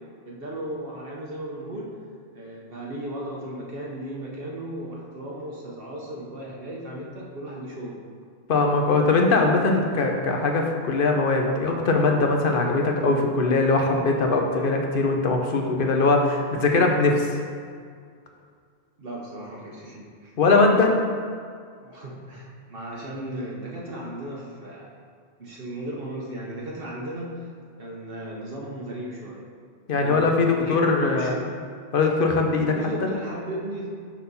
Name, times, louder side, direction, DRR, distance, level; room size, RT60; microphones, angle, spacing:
voice 1, 0.3-1.9 2.3-8.0 19.0-20.3 21.8-24.9 25.4-27.5 27.8-29.5 29.9-31.4 32.7-33.9, right 1 dB, 60° right, -3 dB, 1.1 m, -35 dB
voice 2, 8.5-17.4 20.4-20.9 29.9-31.3 31.9-32.8, left 3 dB, 60° left, 2 dB, 0.9 m, -21 dB
6.0 x 4.3 x 5.3 m, 2.1 s
omnidirectional pair, 1.1 m